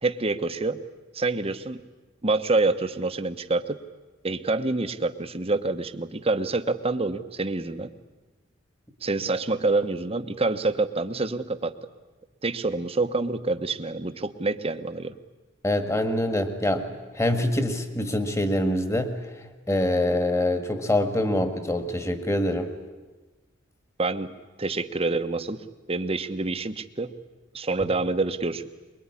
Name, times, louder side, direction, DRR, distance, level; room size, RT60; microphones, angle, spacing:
voice 1, 0.0-0.8 1.1-1.8 2.2-3.8 4.2-7.9 9.0-11.7 12.4-15.1 24.0-24.3 24.6-25.6 25.9-27.1 27.5-28.7, right 3 dB, 30° right, 9 dB, 1.0 m, -27 dB
voice 2, 15.6-19.1 19.7-22.7, left 1 dB, 15° left, 8 dB, 1.8 m, -25 dB
23.0 x 22.5 x 9.8 m, 1.2 s
head